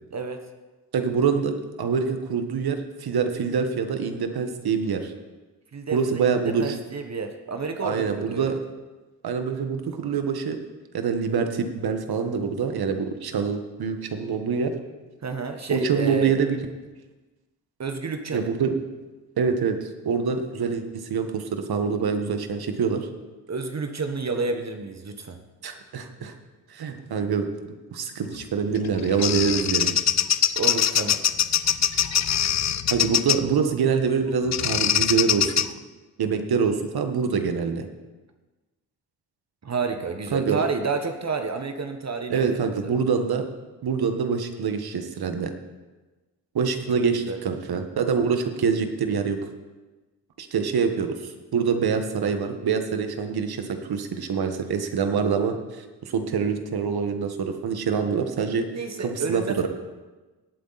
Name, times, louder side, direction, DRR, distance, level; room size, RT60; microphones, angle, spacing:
voice 1, 0.1-0.4 5.7-8.6 15.2-16.3 17.8-18.5 23.5-25.4 30.5-31.2 32.4-32.5 39.6-42.6 42.8-43.0 47.3-47.4 58.7-59.7, right 4 dB, 40° right, 6 dB, 1.3 m, -30 dB
voice 2, 0.9-5.1 5.9-6.7 7.8-8.5 9.2-10.6 10.9-14.7 15.7-16.6 18.3-18.8 19.4-23.0 25.6-26.3 26.7-30.0 32.9-35.5 36.2-37.9 40.3-40.6 42.3-43.5 43.8-45.5 46.5-49.4 50.4-58.7 59.0-59.7, right 6 dB, 65° right, 7 dB, 1.5 m, -25 dB
Bird vocalization bird call bird song, 28.7-33.5 34.5-35.7, left 9 dB, 45° left, 0.5 m, -23 dB
17.5 x 8.5 x 4.2 m, 1.2 s
cardioid pair, 65°, 40 cm